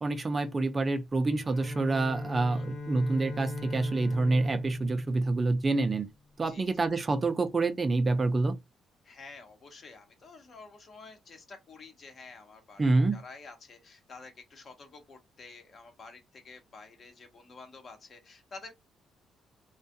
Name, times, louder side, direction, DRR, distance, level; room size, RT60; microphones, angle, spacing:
voice 1, 0.0-6.1 6.4-8.6 12.8-13.2, right 3 dB, 30° right, 0.4 m, -27 dB
Bowed string instrument, 1.3-5.9, left 3 dB, 80° left, 1.2 m, -41 dB
voice 2, 9.0-18.7, left 4 dB, 50° left, 0.9 m, -50 dB
2.5 x 2.3 x 2.6 m
cardioid pair, 90°, 0 cm